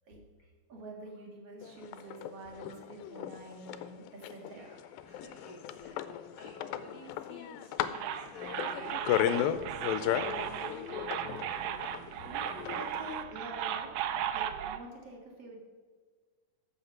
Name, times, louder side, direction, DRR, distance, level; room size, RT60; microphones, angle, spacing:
voice 1, 0.7-4.7 12.3-14.1 14.3-15.6, right 1 dB, 50° right, 0 dB, 2.3 m, -47 dB
sound 1, 1.6-13.2, left 11 dB, 85° left, 2.3 m, -35 dB
voice 2, 4.4-4.8 5.0-9.7 10.0-10.8 11.0-12.1, equal, 35° left, -3 dB, 2.4 m, -53 dB
sound 2, 7.9-14.8, right 10 dB, 85° right, 1.7 m, -36 dB
13.5 x 5.7 x 5.9 m, 1.5 s
omnidirectional pair, 4.1 m